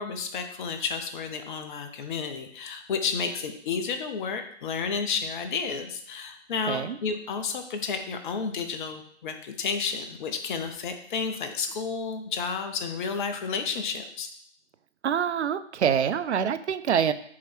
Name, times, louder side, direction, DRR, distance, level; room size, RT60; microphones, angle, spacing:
voice 1, 0.0-14.3, left 5 dB, 45° left, 7 dB, 0.8 m, -31 dB
voice 2, 6.7-7.0 15.0-17.1, right 8 dB, 70° right, 12 dB, 0.6 m, -25 dB
8.3 x 3.0 x 4.4 m, 0.64 s
figure-of-eight pair, 125°, 36 cm